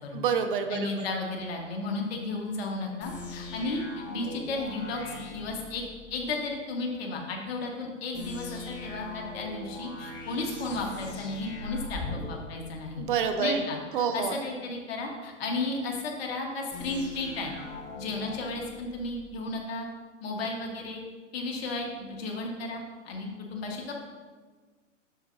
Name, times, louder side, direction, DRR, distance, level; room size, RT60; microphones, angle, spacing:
voice 1, 0.1-0.9 13.0-13.6 13.9-14.3, right 7 dB, 45° right, 7 dB, 0.6 m, -27 dB
voice 2, 0.7-3.8 4.1-5.8 6.1-13.1 13.4-17.5 18.0-19.9 20.2-21.0 21.3-24.0, left 3 dB, 50° left, 1 dB, 1.5 m, -34 dB
sound 1, 3.0-6.3 8.1-13.4 16.7-19.4, left 2 dB, 25° left, 1.3 m, -41 dB
7.0 x 6.8 x 2.7 m, 1.4 s
hypercardioid pair, 120°, 38 cm